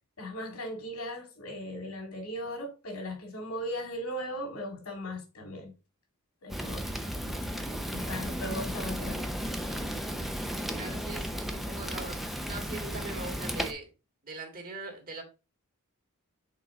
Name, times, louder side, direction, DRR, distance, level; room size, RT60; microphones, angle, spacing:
voice 1, 0.2-5.7 6.4-7.0 7.9-9.5, equal, 75° left, 2.6 m, -38 dB
Fire, 6.5-13.7, equal, ahead, 0.6 m, -34 dB
voice 2, 10.7-13.9 14.2-15.2, right 3 dB, 40° right, 2.0 m, -41 dB
6.6 x 4.6 x 3.8 m
head